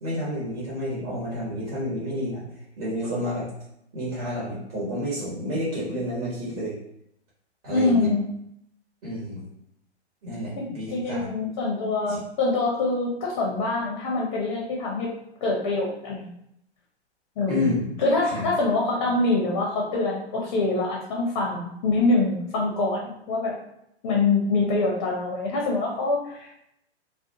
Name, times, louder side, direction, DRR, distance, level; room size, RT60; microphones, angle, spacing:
voice 1, 0.0-2.4 2.8-3.5 3.9-6.8 7.6-8.1 9.0-9.4 10.2-11.3 12.1-12.2 17.5-17.9 18.2-18.4, left 1 dB, 40° right, -6 dB, 1.1 m, -29 dB
voice 2, 7.7-8.3 10.6-15.1 15.4-16.3 17.4-17.7 18.0-23.6 24.0-26.6, left 3 dB, 30° left, -2 dB, 0.5 m, -25 dB
2.4 x 2.1 x 2.7 m, 0.78 s
figure-of-eight pair, 120°, 34 cm